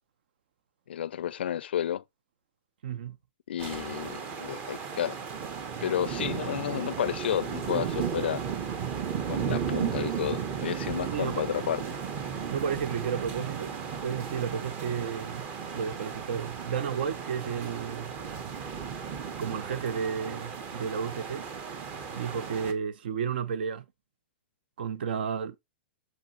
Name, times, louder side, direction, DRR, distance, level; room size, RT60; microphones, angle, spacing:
voice 1, 0.9-2.0 3.5-5.2 5.8-8.4 9.3-11.8, left 10 dB, 90° left, 0.4 m, -31 dB
voice 2, 2.8-3.2 11.1-11.4 12.5-15.4 15.7-18.1 19.4-21.5 22.1-23.8 24.8-25.6, right 7 dB, 70° right, 0.8 m, -32 dB
sound 1, 3.6-22.7, right 7 dB, 25° right, 0.9 m, -35 dB
8.2 x 6.5 x 2.8 m
hypercardioid pair, 160°, 6 cm